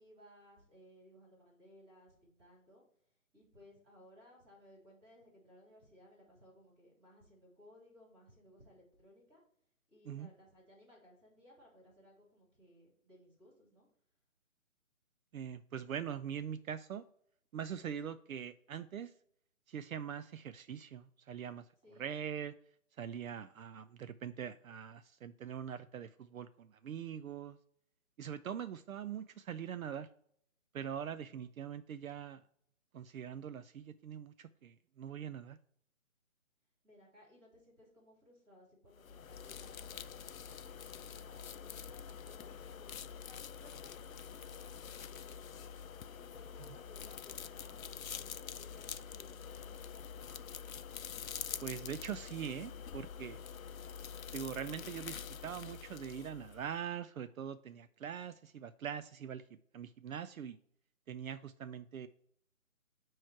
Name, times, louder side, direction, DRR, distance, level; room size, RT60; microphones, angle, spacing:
voice 1, 0.0-2.8 3.3-9.4 9.9-13.9 21.8-22.1 31.3-31.4 36.8-42.9 43.3-45.6 46.2-50.5, left 1 dB, 20° right, -4 dB, 3.1 m, -61 dB
voice 2, 15.3-17.0 17.5-19.1 19.7-21.6 22.0-22.5 23.0-27.6 28.2-30.1 30.7-32.4 32.9-35.6 51.6-53.4 54.3-59.4 59.7-60.6 61.1-62.1, right 8 dB, 75° right, 12 dB, 0.5 m, -43 dB
sound 1, 38.9-56.8, left 7 dB, 70° left, 0.6 m, -46 dB
9.1 x 3.1 x 4.5 m, 0.66 s
hypercardioid pair, 170°, 42 cm